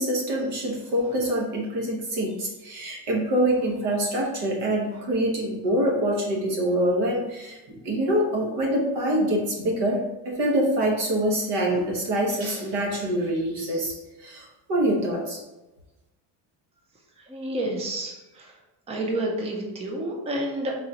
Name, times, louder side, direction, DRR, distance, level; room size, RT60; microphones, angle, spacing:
voice 1, 0.0-15.4, right 1 dB, 55° right, -1 dB, 1.3 m, -25 dB
voice 2, 17.3-18.5 18.9-20.7, right 1 dB, 15° right, 0 dB, 0.5 m, -29 dB
4.1 x 3.7 x 2.8 m, 1.0 s
cardioid pair, 160°, 47 cm